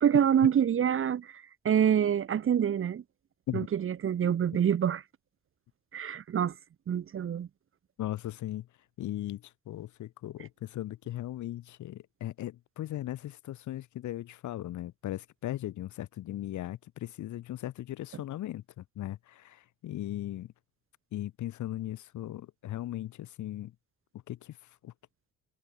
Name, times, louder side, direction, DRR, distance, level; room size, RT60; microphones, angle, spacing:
voice 1, 0.0-3.0 3.5-5.0 5.9-6.5 6.9-7.5, right 9 dB, 45° right, 0.9 m, -26 dB
voice 2, 8.0-8.7 9.0-20.5 21.1-23.7 24.3-24.6 24.8-24.9, left 13 dB, 75° left, 1.4 m, -38 dB
cardioid pair, 90°, 30 cm